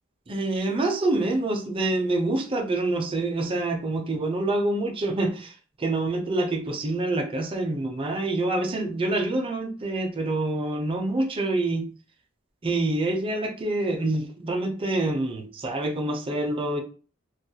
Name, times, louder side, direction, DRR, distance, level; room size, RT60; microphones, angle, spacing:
voice 1, 0.3-11.9 12.6-16.8, right 2 dB, 25° right, 3 dB, 0.4 m, -26 dB
2.3 x 2.1 x 2.7 m, 0.39 s
head